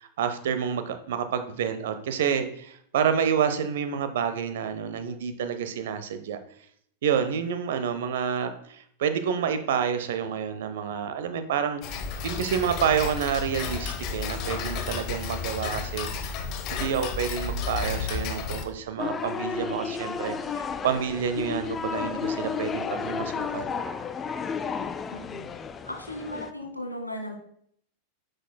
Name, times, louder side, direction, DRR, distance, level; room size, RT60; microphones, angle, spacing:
voice 1, 0.0-6.4 7.0-12.0 12.2-16.1 16.7-23.7, right 7 dB, 55° right, 10 dB, 0.7 m, -28 dB
Tick-tock, 11.8-18.6, left 5 dB, 40° left, 0.9 m, -32 dB
sound 1, 19.0-26.5, left 6 dB, 20° left, 0.4 m, -32 dB
voice 2, 25.1-25.5 25.8-27.4, left 1 dB, 85° left, 2 dB, 1.4 m, -36 dB
9.9 x 5.2 x 2.2 m, 0.65 s
figure-of-eight pair, 90°, 0 cm